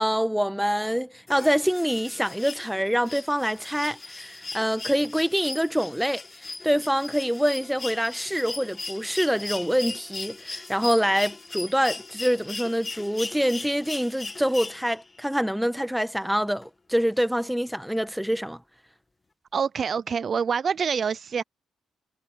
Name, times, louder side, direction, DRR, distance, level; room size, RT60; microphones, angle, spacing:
voice 1, 0.0-6.2 6.6-18.6, equal, ahead, 1.4 m, -25 dB
sound 1, 1.3-15.2 16.6-16.7, left 3 dB, 25° left, 1.9 m, -38 dB
voice 2, 19.5-21.4, right 6 dB, 45° right, 0.3 m, -26 dB
cardioid pair, 90°, 0 cm